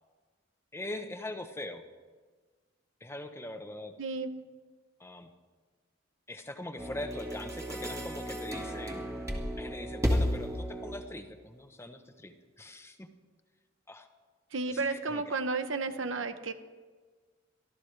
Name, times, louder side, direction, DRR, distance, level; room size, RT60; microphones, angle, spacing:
voice 1, 0.7-1.8 3.0-3.9 5.0-5.3 6.3-9.0 9.6-13.1 13.9-14.1 14.7-15.3, left 1 dB, 15° left, 7 dB, 0.9 m, -42 dB
voice 2, 4.0-4.3 14.5-16.5, right 3 dB, 85° right, 10 dB, 0.9 m, -32 dB
sound 1, 6.8-11.2, equal, 15° right, 1.7 m, -33 dB
23.5 x 14.0 x 3.3 m, 1.4 s
head